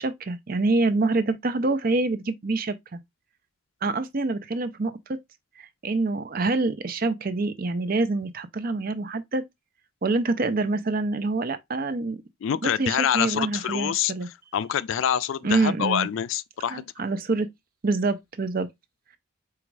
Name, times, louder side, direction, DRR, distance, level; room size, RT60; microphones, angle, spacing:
voice 1, 0.0-3.0 3.8-5.2 5.6-9.4 10.0-12.2 12.6-14.3 15.4-16.1 16.7-17.5 17.8-18.7, right 3 dB, 45° right, 0.5 m, -26 dB
voice 2, 12.4-14.1 14.5-16.9, left 9 dB, 70° left, 0.3 m, -26 dB
4.0 x 2.3 x 4.6 m
head